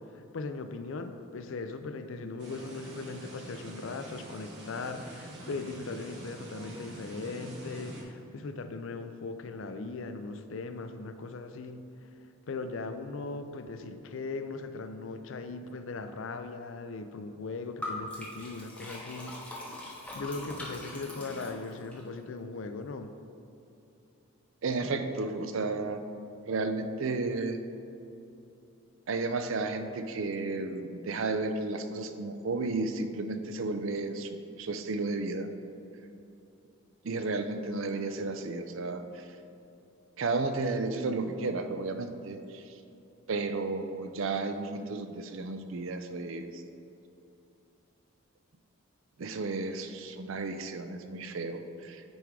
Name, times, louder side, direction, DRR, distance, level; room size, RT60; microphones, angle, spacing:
voice 1, 0.1-12.1 12.5-19.3 20.1-23.1, left 3 dB, 65° left, 8 dB, 0.4 m, -39 dB
sound 1, 2.4-8.0, right 1 dB, 55° right, 1.6 m, -46 dB
Liquid, 17.8-22.0, left 1 dB, 5° left, 0.9 m, -41 dB
voice 2, 24.6-26.0 26.5-27.6 29.1-35.5 37.0-39.2 40.2-42.6 43.3-46.6 49.2-52.0, right 3 dB, 70° right, 8 dB, 0.5 m, -33 dB
9.2 x 3.6 x 4.7 m, 2.8 s
head